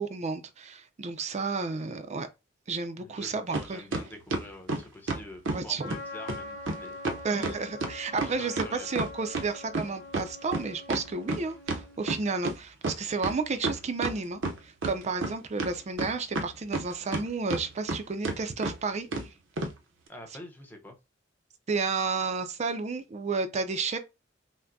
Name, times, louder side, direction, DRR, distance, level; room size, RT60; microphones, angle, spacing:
voice 1, 0.0-2.3 2.7-3.8 5.5-6.0 7.2-19.1 21.7-24.0, right 4 dB, 35° right, 0.5 m, -32 dB
voice 2, 3.0-7.0 8.1-8.9 20.1-21.0, equal, 10° left, 0.8 m, -46 dB
sound 1, 3.5-3.7 3.9-5.6 5.9-6.0 6.3-6.4 6.7-6.8 7.0-9.5 9.7-12.5 12.8-12.9 13.2-14.1 14.4-15.3 15.6-17.2 17.5-18.0 18.2-18.4 18.6-18.7 19.1-19.3 19.6-19.7, right 2 dB, 70° right, 0.7 m, -30 dB
Trumpet, 5.8-12.0, left 3 dB, 85° left, 0.9 m, -44 dB
5.7 x 2.1 x 2.6 m
head